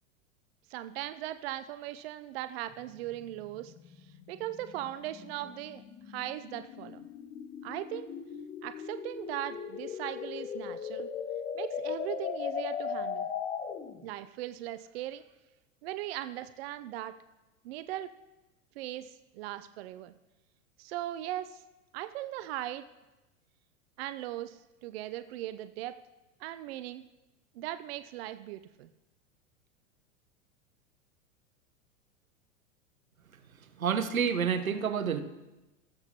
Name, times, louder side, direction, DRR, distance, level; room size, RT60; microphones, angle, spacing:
voice 1, 0.7-7.0 7.6-8.1 8.6-11.1 11.5-13.3 14.0-15.2 15.8-17.2 17.6-18.2 18.8-20.1 20.8-21.6 21.9-22.9 24.0-26.0 26.4-27.0 27.6-28.9, right 14 dB, 50° right, 12 dB, 0.6 m, -39 dB
sound 1, 2.7-14.0, left 7 dB, 15° left, 0.4 m, -38 dB
voice 2, 33.8-35.2, right 7 dB, 80° right, 10 dB, 1.0 m, -28 dB
18.0 x 7.9 x 2.8 m, 1.0 s
figure-of-eight pair, 95°, 41 cm